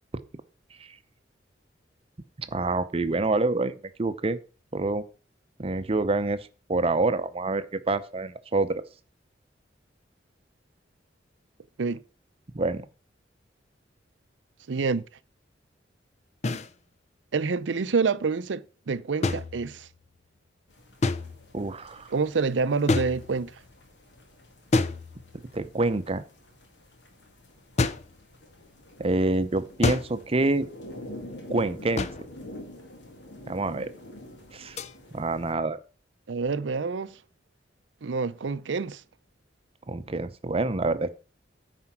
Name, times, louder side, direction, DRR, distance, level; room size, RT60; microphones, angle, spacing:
voice 1, 2.4-4.4 4.7-5.0 5.6-8.8 12.5-12.8 21.5-22.1 25.5-26.2 29.0-30.7 31.5-32.1 33.5-33.9 34.5-34.8 35.1-35.8 39.9-41.1, right 2 dB, 35° right, 0.7 m, -27 dB
voice 2, 14.7-15.0 17.3-19.9 22.1-23.6 36.3-37.2 38.0-39.0, right 4 dB, 80° right, 0.5 m, -27 dB
sound 1, 16.4-16.7 19.2-20.0 21.0-21.6 22.9-23.6 24.7-25.6 27.8-28.2 29.8-30.3 32.0-32.4 34.8-34.9, left 3 dB, 40° left, 0.5 m, -28 dB
sound 2, 20.7-35.5, left 1 dB, 70° left, 2.2 m, -47 dB
9.6 x 4.4 x 5.9 m
head